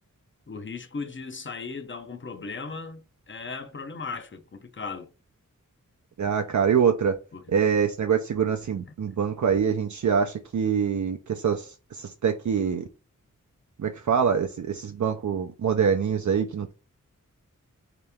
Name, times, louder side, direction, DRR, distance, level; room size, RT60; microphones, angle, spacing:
voice 1, 0.5-5.1 7.3-7.5, left 4 dB, 35° left, 0.6 m, -37 dB
voice 2, 6.2-7.2 7.5-12.9 13.8-16.7, right 7 dB, 60° right, 0.5 m, -25 dB
3.2 x 2.9 x 3.4 m
wide cardioid pair, 75°, 33 cm